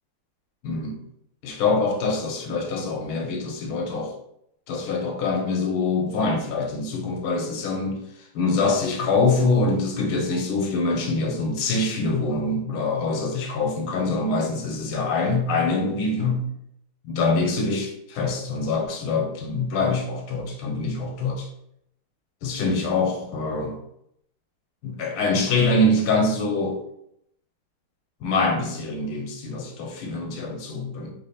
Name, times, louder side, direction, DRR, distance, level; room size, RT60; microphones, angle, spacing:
voice 1, 0.6-1.0 1.4-4.2 4.7-8.0 8.3-16.5 17.1-21.5 22.4-23.8 24.8-26.8 28.2-31.1, left 3 dB, 80° left, 2 dB, 1.7 m, -24 dB
3.6 x 3.4 x 4.1 m, 0.76 s
omnidirectional pair, 2.3 m